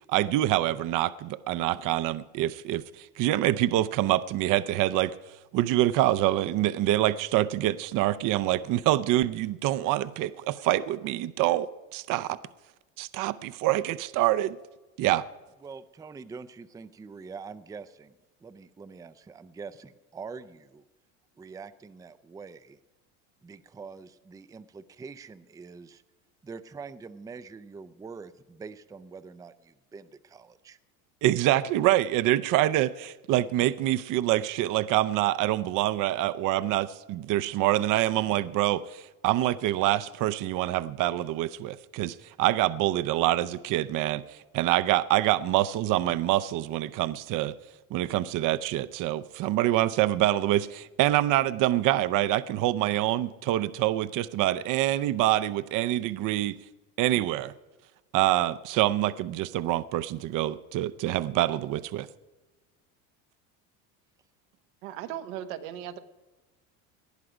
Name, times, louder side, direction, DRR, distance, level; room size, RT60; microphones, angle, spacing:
voice 1, 0.1-5.1 5.5-12.4 13.0-14.6 15.0-15.2 31.2-47.5 47.9-56.5 57.0-57.5 58.1-62.1, right 14 dB, 50° right, 15 dB, 0.6 m, -26 dB
voice 2, 15.6-18.1 18.4-20.8 21.4-22.8 23.4-26.0 26.4-30.8, right 5 dB, 10° right, 13 dB, 0.4 m, -44 dB
voice 3, 64.8-66.0, right 11 dB, 85° right, 9 dB, 1.1 m, -37 dB
19.0 x 11.5 x 5.0 m, 1.2 s
supercardioid pair, 115°, 40 cm